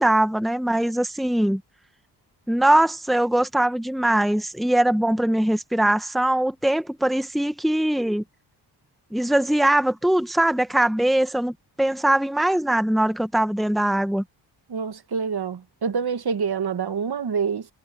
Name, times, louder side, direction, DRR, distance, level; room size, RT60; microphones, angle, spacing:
voice 1, 0.0-1.6 2.5-8.2 9.1-14.2, right 1 dB, ahead, 1.2 m, -21 dB
voice 2, 14.7-17.7, right 6 dB, 55° right, 1.9 m, -26 dB
supercardioid pair, 50°, 46 cm